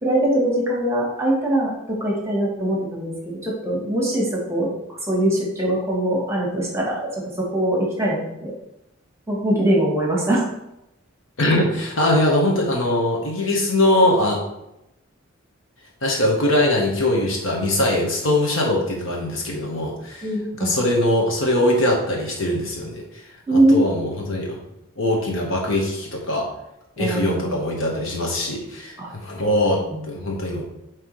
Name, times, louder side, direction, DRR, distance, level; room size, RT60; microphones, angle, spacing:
voice 1, 0.0-4.7 5.1-8.5 9.3-10.4 20.2-20.7 23.5-23.8 27.0-27.6 29.0-29.1 29.8-30.0, right 1 dB, 15° right, -3 dB, 1.3 m, -22 dB
voice 2, 11.4-14.4 16.0-20.3 20.6-23.0 23.5-24.6 25.0-26.5 27.0-28.9 29.2-30.6, left 1 dB, 70° left, -1 dB, 1.3 m, -21 dB
9.0 x 3.2 x 3.2 m, 0.87 s
head